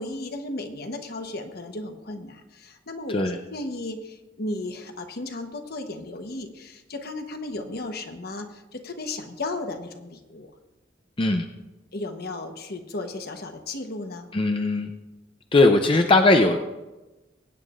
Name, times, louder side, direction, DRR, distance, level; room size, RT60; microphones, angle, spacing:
voice 1, 0.0-3.2 3.5-10.5 11.9-14.3, left 2 dB, 60° left, 5 dB, 1.1 m, -35 dB
voice 2, 14.3-14.9 15.5-16.6, left 2 dB, 30° left, 5 dB, 0.6 m, -19 dB
22.0 x 9.0 x 2.5 m, 1.1 s
head